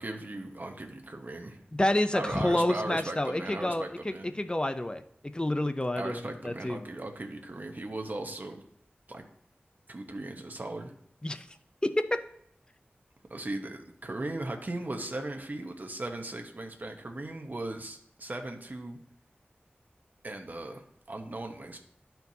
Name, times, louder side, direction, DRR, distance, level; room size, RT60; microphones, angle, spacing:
voice 1, 0.0-1.6 2.1-4.3 5.9-8.6 9.1-9.2 9.9-10.9 13.3-19.0 20.2-20.8 21.1-21.8, right 2 dB, 50° right, 3 dB, 0.9 m, -38 dB
voice 2, 1.7-6.8 11.2-11.5 11.8-12.2, left 1 dB, 25° left, 9 dB, 0.5 m, -29 dB
12.0 x 4.5 x 2.7 m, 0.71 s
wide cardioid pair, 60°, 4 cm